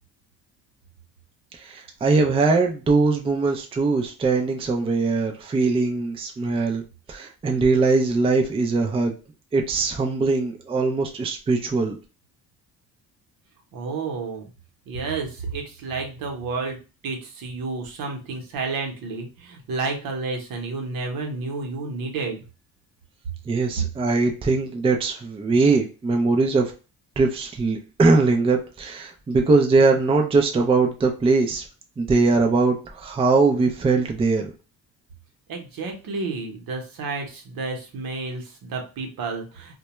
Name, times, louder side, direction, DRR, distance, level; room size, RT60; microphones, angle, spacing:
voice 1, 1.5-6.8 7.1-9.1 9.5-12.0 23.5-26.7 27.2-31.7 32.0-34.5, right 3 dB, 15° right, 2 dB, 0.3 m, -21 dB
voice 2, 13.7-14.5 14.9-16.8 17.0-22.4 35.5-39.8, right 3 dB, 75° right, 2 dB, 0.8 m, -31 dB
2.2 x 2.2 x 2.9 m, 0.33 s
cardioid pair, 110°, 36 cm